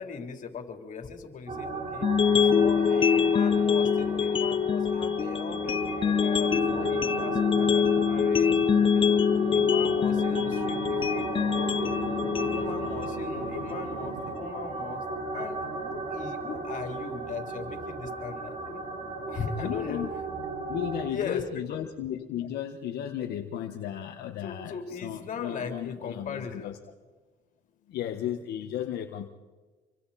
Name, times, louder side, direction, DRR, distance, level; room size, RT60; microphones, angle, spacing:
voice 1, 0.0-8.6 8.9-9.2 9.5-12.0 12.4-15.0 15.3-18.8 19.3-20.1 21.1-21.8 24.4-26.7, left 6 dB, 50° left, 4 dB, 3.7 m, -39 dB
sound 1, 1.5-21.1, right 3 dB, 40° right, 5.6 m, -36 dB
sound 2, 2.0-14.0, left 7 dB, 30° left, 0.6 m, -25 dB
Conversation / Chatter / Fixed-wing aircraft airplane, 6.4-14.4, right 13 dB, 90° right, 1.0 m, -43 dB
voice 2, 19.6-20.1 20.7-26.8 27.9-29.3, left 11 dB, 75° left, 5 dB, 1.5 m, -34 dB
27.0 x 25.0 x 4.3 m, 1.3 s
cardioid pair, 110°, 17 cm